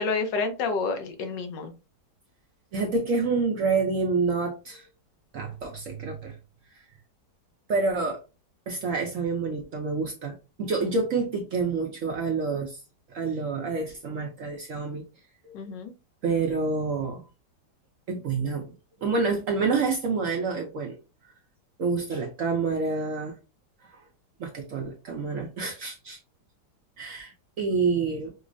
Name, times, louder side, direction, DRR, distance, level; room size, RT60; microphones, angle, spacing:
voice 1, 0.0-1.7 15.5-15.9, left 4 dB, 85° left, 1.4 m, -29 dB
voice 2, 2.7-4.9 5.3-6.3 7.7-8.2 8.7-12.8 13.1-15.0 15.4-15.6 16.2-17.2 18.1-18.7 19.0-21.0 21.8-23.3 23.9-24.0 24.4-26.2 27.0-28.3, right 4 dB, 60° right, 0.9 m, -28 dB
5.1 x 2.1 x 2.4 m
omnidirectional pair, 1.9 m